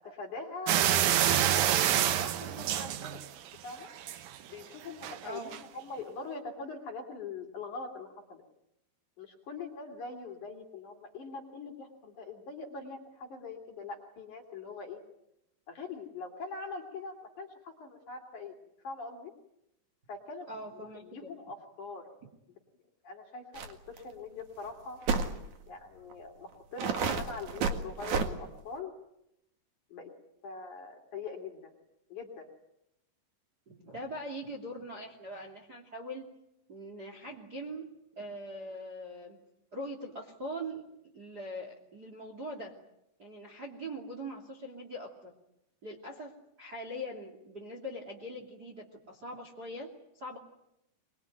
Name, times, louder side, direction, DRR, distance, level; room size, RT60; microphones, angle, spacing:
voice 1, 0.0-3.2 3.6-3.9 4.5-8.4 9.2-15.0 15.7-18.6 18.8-19.3 20.1-20.5 20.7-22.1 23.0-25.0 25.7-28.9 29.9-30.1 30.4-31.7 32.1-32.5, left 4 dB, 45° left, 3 dB, 4.0 m, -43 dB
sound 1, 0.7-3.5 3.9-4.4 5.0-5.2 5.5-5.6, right 11 dB, 70° right, 2.2 m, -27 dB
voice 2, 5.2-5.6 20.5-21.3 33.7-36.3 36.7-37.9 38.2-39.4 39.7-40.8 41.1-42.7 43.2-45.3 45.8-49.9 50.1-50.4, equal, 25° right, 2 dB, 2.4 m, -42 dB
sound 2, 23.5-23.7 24.0-24.1 25.1-25.3 26.1-26.2 26.8-28.3, right 5 dB, 50° right, 2.6 m, -30 dB
24.0 x 22.5 x 9.2 m, 0.82 s
omnidirectional pair, 5.5 m